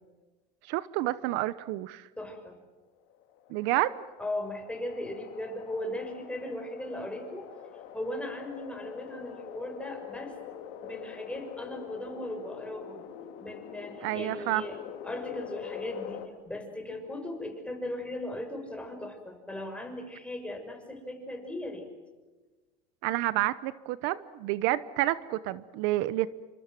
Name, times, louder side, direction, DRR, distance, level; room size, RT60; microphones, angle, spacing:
voice 1, 0.7-2.1 3.5-4.0 14.0-14.6 23.0-26.3, right 16 dB, 65° right, 16 dB, 1.0 m, -29 dB
voice 2, 2.2-2.6 4.2-7.5 7.9-10.4 10.8-13.0 13.4-21.9, left 1 dB, 5° left, 4 dB, 6.3 m, -38 dB
sound 1, 3.1-16.3, left 9 dB, 70° left, 3.8 m, -44 dB
28.5 x 26.0 x 7.7 m, 1.2 s
supercardioid pair, 115°, 20 cm